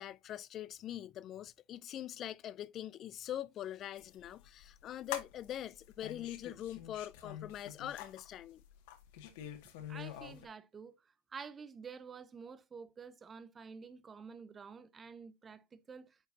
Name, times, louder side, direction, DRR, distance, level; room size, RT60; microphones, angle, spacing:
voice 1, 0.0-8.6, left 11 dB, 40° left, 0.4 m, -43 dB
sound 1, 4.0-10.5, left 10 dB, 70° left, 1.9 m, -47 dB
voice 2, 9.9-10.9 11.3-16.2, right 5 dB, 25° right, 0.7 m, -49 dB
10.0 x 4.6 x 2.7 m
supercardioid pair, 115°, 0 cm